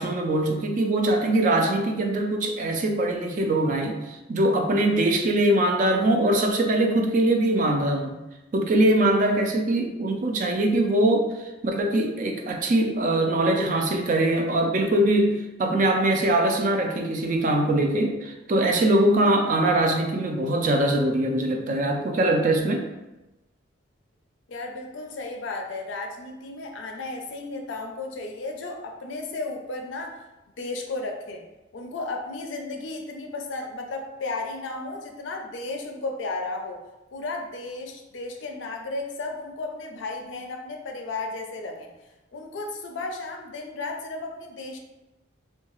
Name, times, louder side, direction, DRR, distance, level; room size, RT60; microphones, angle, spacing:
voice 1, 0.0-8.1 8.5-22.9, right 1 dB, 40° right, 3 dB, 0.3 m, -22 dB
voice 2, 24.5-30.2 30.6-31.4 31.7-36.8 37.1-41.9 42.3-44.8, left 3 dB, 70° left, 3 dB, 0.4 m, -34 dB
2.7 x 2.3 x 2.9 m, 1.0 s
head